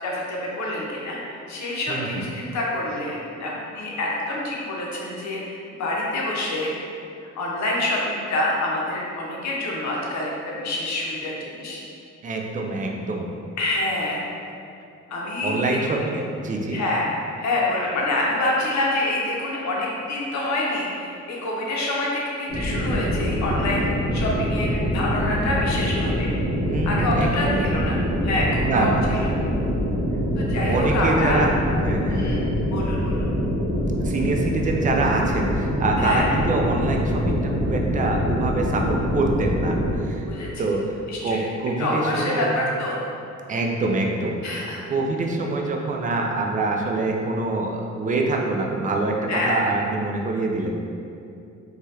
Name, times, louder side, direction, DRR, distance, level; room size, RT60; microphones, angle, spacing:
voice 1, 0.0-6.7 7.4-11.8 13.6-14.2 15.1-16.0 16.7-17.1 17.4-26.3 26.8-28.0 28.2-29.2 30.4-31.4 32.1-32.4 32.7-33.2 36.0-36.2 40.3-40.6 41.1-41.4 41.8-43.0 44.4-44.8 49.3-49.6, left 2 dB, 65° left, -4 dB, 0.7 m, -27 dB
voice 2, 1.9-2.2 12.2-13.3 15.4-16.8 26.7-27.7 28.6-29.1 30.7-31.5 31.8-32.2 34.0-40.3 40.6-41.0 41.2-42.5 43.5-44.6 44.9-50.7, right 2 dB, 25° right, 1 dB, 0.3 m, -25 dB
sound 1, 22.5-40.0, equal, 5° left, 1.0 m, -24 dB
3.1 x 2.3 x 2.8 m, 2.6 s
cardioid pair, 90°, 30 cm